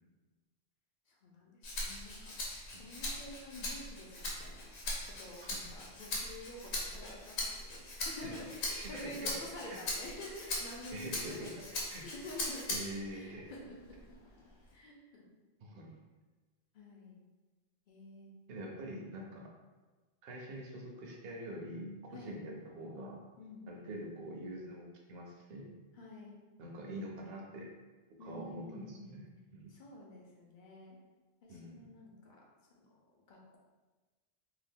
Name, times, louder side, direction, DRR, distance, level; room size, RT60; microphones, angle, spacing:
voice 1, 1.1-2.4 2.7-4.7 5.2-11.3 11.6-12.8 13.1-14.2 14.7-15.2 16.7-17.2 17.9-18.3 22.1-22.4 23.4-23.6 25.9-26.4 28.2-29.2 29.7-31.0 31.4-32.4 32.7-33.6, left 1 dB, 55° left, -2 dB, 0.7 m, -49 dB
Rattle (instrument), 1.6-13.1 13.5-14.7, left 2 dB, 85° left, 1.0 m, -40 dB
voice 2, 8.7-9.4 9.7-9.8 10.9-11.6 11.9-12.0 12.7-13.4 15.6-16.0 18.5-19.5 20.2-23.2 23.7-25.7 26.6-27.7 28.2-29.7 31.5-31.9, right 1 dB, 70° right, 0 dB, 0.8 m, -45 dB
2.8 x 2.4 x 3.4 m, 1.3 s
omnidirectional pair, 1.1 m